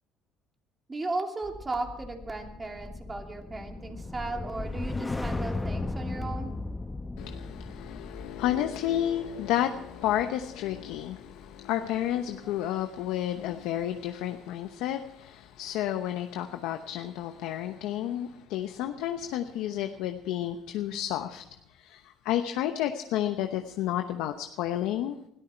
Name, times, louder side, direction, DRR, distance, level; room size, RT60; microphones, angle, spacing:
voice 1, 0.9-6.5, right 2 dB, 25° right, 3 dB, 2.9 m, -35 dB
sound 1, 1.4-11.8 12.2-12.5, left 2 dB, 15° left, 0.8 m, -37 dB
voice 2, 7.2-21.4 21.8-25.2, left 11 dB, 85° left, 6 dB, 0.9 m, -31 dB
20.5 x 13.5 x 4.5 m, 0.76 s
cardioid pair, 95°, 0 cm